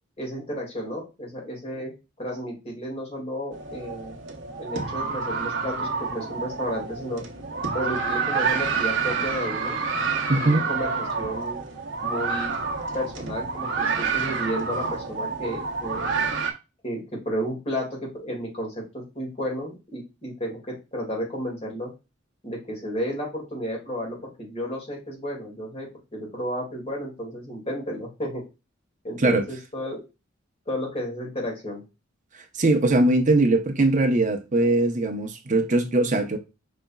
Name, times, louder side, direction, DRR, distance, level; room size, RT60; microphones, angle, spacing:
voice 1, 0.2-1.9 2.2-4.2 4.6-7.2 7.7-9.8 10.3-11.6 12.0-12.5 12.9-16.1 16.8-21.9 22.4-28.4 29.0-30.0 30.7-31.8, equal, 30° left, 2.2 m, -32 dB
sound 1, 3.5-16.5, right 5 dB, 70° right, 0.9 m, -28 dB
voice 2, 10.3-10.6 29.2-29.4 32.6-36.4, right 2 dB, 40° right, 0.8 m, -21 dB
5.3 x 4.2 x 2.3 m
head